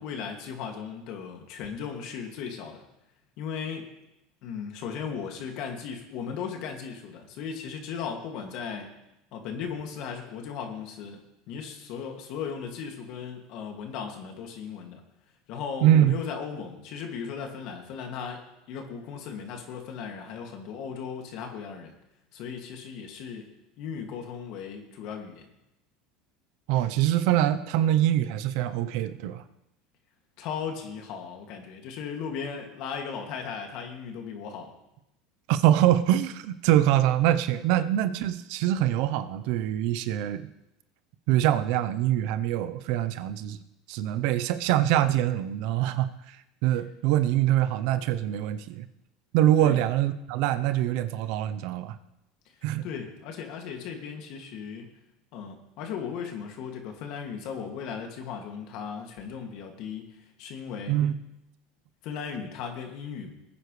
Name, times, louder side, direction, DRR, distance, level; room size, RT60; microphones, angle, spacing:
voice 1, 0.0-2.8 3.4-3.9 4.4-8.9 9.3-11.2 11.5-15.0 15.5-21.9 22.3-23.5 23.8-25.5 30.4-34.7 49.6-49.8 52.8-55.0 55.3-61.0 62.0-63.3, left 6 dB, 60° left, 3 dB, 2.3 m, -37 dB
voice 2, 15.8-16.1 26.7-29.4 35.5-40.5 41.3-43.6 43.9-46.4 46.6-48.9 49.3-51.9 52.6-52.8 60.9-61.2, right 12 dB, 70° right, 12 dB, 0.8 m, -24 dB
19.5 x 9.4 x 3.3 m, 0.89 s
supercardioid pair, 110°, 0 cm